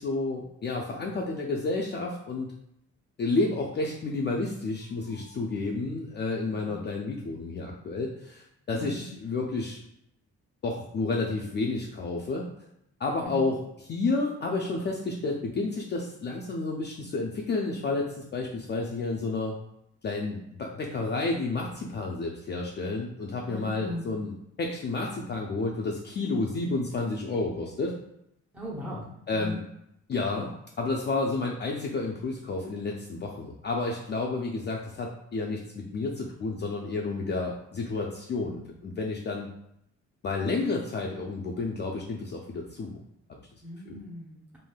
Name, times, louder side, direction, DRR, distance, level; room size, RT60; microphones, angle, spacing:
voice 1, 0.0-2.5 3.2-9.8 10.6-12.5 13.0-19.6 20.0-27.9 29.3-29.6 30.1-30.5 30.8-39.5 40.2-43.0 43.9-44.0, left 3 dB, 35° left, 0 dB, 0.4 m, -31 dB
voice 2, 6.4-6.8 8.7-9.1 13.2-13.5 23.4-24.1 28.5-29.6 43.6-44.4, left 1 dB, 5° right, -5 dB, 0.7 m, -38 dB
3.2 x 2.6 x 2.2 m, 0.78 s
cardioid pair, 90°, 30 cm